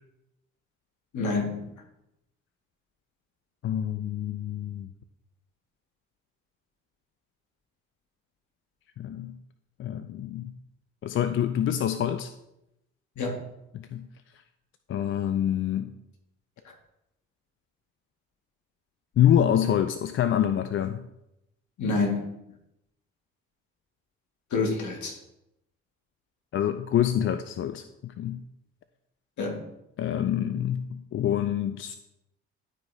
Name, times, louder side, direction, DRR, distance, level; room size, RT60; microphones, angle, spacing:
voice 1, 1.1-1.6 13.2-13.4 21.8-22.2 24.5-25.2 29.4-29.6, left 3 dB, 55° left, 1 dB, 1.9 m, -27 dB
voice 2, 3.6-4.9 9.0-9.4 9.8-10.5 11.0-12.3 13.7-14.0 14.9-15.9 19.2-21.0 26.5-28.4 30.0-32.0, left 10 dB, 35° left, 10 dB, 0.4 m, -26 dB
11.5 x 4.8 x 2.8 m, 0.85 s
hypercardioid pair, 50°, 34 cm